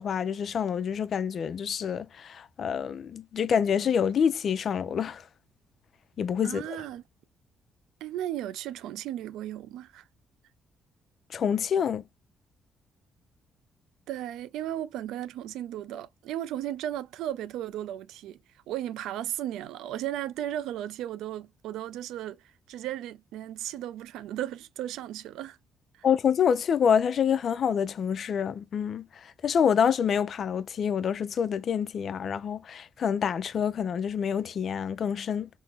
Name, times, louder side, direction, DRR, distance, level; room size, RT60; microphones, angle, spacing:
voice 1, 0.0-5.2 6.2-6.6 11.3-12.0 26.0-35.5, left 7 dB, 55° left, 0.5 m, -27 dB
voice 2, 6.4-7.0 8.0-10.0 14.1-18.4 18.7-22.4 22.7-25.6 25.9-26.1, right 12 dB, 90° right, 0.3 m, -35 dB
3.6 x 2.0 x 2.9 m
cardioid pair, 90°, 0 cm